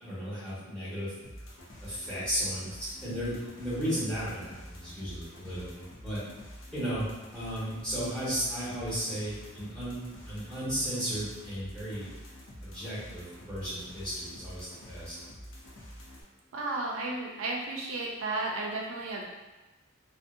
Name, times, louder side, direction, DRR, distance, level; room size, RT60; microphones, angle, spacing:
voice 1, 0.0-1.1 1.8-6.2 6.7-7.1 7.3-10.0 10.2-12.1 12.6-15.2, equal, 5° left, -12 dB, 1.2 m, -34 dB
sound 1, 1.2-16.2, equal, 75° left, 0.6 m, -47 dB
voice 2, 16.5-19.3, right 2 dB, 90° right, -2 dB, 0.4 m, -33 dB
2.6 x 2.1 x 2.5 m, 1.2 s
head